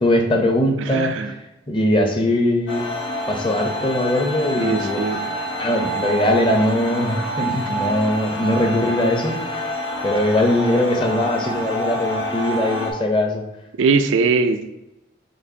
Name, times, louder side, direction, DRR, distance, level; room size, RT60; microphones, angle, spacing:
voice 1, 0.0-1.3 1.7-2.9 3.3-5.0 5.6-9.6 10.0-13.4, left 1 dB, 25° left, 2 dB, 0.6 m, -21 dB
voice 2, 0.8-1.3 4.6-5.4 13.8-14.7, right 4 dB, 80° right, 8 dB, 0.3 m, -21 dB
sound 1, 2.7-12.9, equal, 70° left, 0.8 m, -27 dB
6.4 x 2.5 x 2.7 m, 0.94 s
head